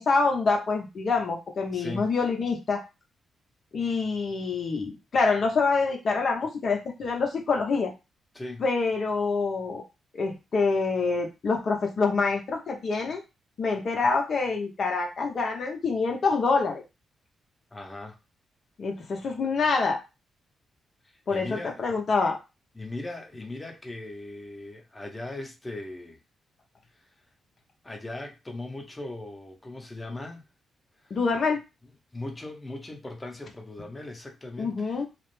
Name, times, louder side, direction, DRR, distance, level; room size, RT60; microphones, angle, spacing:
voice 1, 0.0-2.8 3.7-7.9 8.6-9.8 10.1-13.2 13.6-16.8 18.8-20.0 21.3-22.4 31.1-31.6 34.6-35.1, left 4 dB, 60° left, 0.7 m, -26 dB
voice 2, 1.7-2.1 8.3-8.6 17.7-18.2 21.0-21.8 22.7-26.2 27.8-30.5 31.0-31.2 32.1-35.0, left 2 dB, 25° left, 0.8 m, -39 dB
2.4 x 2.0 x 3.1 m
hypercardioid pair, 45°, 0 cm